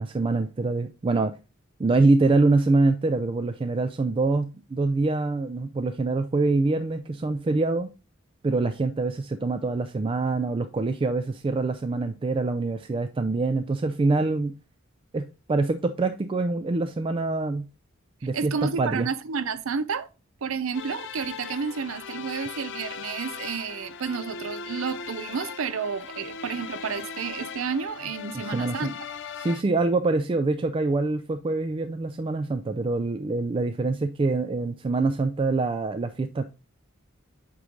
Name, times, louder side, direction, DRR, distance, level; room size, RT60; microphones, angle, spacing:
voice 1, 0.0-1.4 1.8-7.9 8.4-14.5 15.1-17.7 18.2-19.1 28.4-28.9 29.4-36.4, right 3 dB, 25° right, 0.3 m, -25 dB
voice 2, 18.3-20.1 20.4-29.0, right 5 dB, 75° right, 0.5 m, -31 dB
sound 1, 20.7-29.6, left 6 dB, 60° left, 0.5 m, -39 dB
8.2 x 3.1 x 3.7 m
head